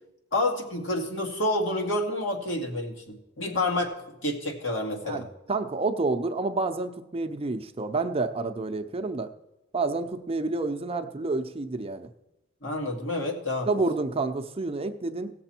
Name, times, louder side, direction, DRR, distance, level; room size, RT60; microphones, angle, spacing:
voice 1, 0.3-4.0 4.2-5.3 12.6-13.8, left 1 dB, 70° left, 1 dB, 2.3 m, -29 dB
voice 2, 5.5-9.3 9.7-12.1 13.7-15.3, right 3 dB, 30° right, 7 dB, 0.6 m, -29 dB
17.5 x 6.9 x 4.4 m, 0.95 s
head